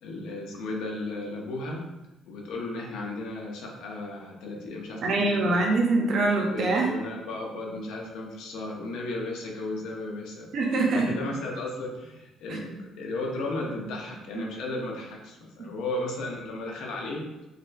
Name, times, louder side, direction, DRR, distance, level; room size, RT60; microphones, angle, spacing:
voice 1, 0.0-1.9 2.3-5.6 6.5-10.5 10.9-17.2, left 2 dB, 80° left, 0 dB, 0.6 m, -34 dB
voice 2, 5.0-6.9 10.5-11.1 12.5-12.7 14.3-14.4 15.6-15.7, right 2 dB, 55° right, 0 dB, 0.6 m, -24 dB
4.0 x 2.2 x 2.5 m, 0.98 s
cardioid pair, 135°, 0 cm